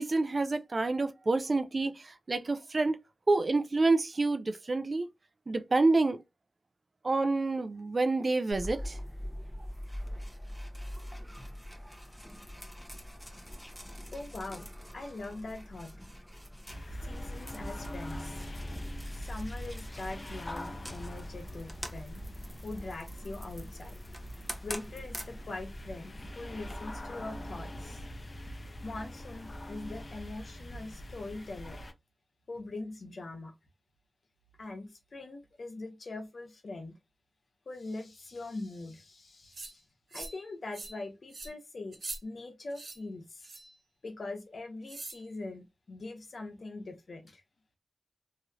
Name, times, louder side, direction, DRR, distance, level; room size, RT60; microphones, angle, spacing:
voice 1, 0.0-3.0 3.3-5.1 5.5-6.2 7.0-9.0, right 3 dB, 50° right, 0.4 m, -28 dB
sound 1, 8.5-26.7, equal, ahead, 0.9 m, -44 dB
voice 2, 14.1-14.7 14.9-15.9 17.0-18.4 19.1-22.2 22.6-23.9 24.6-28.0 28.8-31.8 32.5-33.5 34.6-36.9 37.7-39.8 40.1-43.5 44.0-47.4, left 2 dB, 70° left, 1.0 m, -42 dB
sound 2, 16.7-31.9, equal, 45° left, 0.5 m, -43 dB
sound 3, 39.5-39.7 40.1-40.4 40.7-41.0 41.3-41.5 41.9-42.2 42.7-43.0 43.4-43.7 44.9-45.2, right 2 dB, 70° right, 1.3 m, -42 dB
3.0 x 2.8 x 2.4 m
cardioid pair, 60°, 0 cm